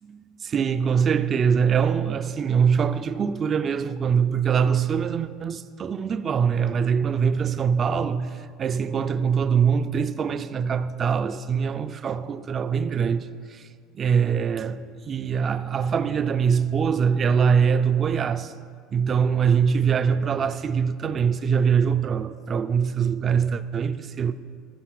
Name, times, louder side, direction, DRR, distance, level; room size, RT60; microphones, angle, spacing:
voice 1, 0.0-13.7 13.9-18.5 18.9-24.3, right 7 dB, 30° right, 0.5 m, -23 dB
14.5 x 5.6 x 7.6 m
supercardioid pair, 125°, 0 cm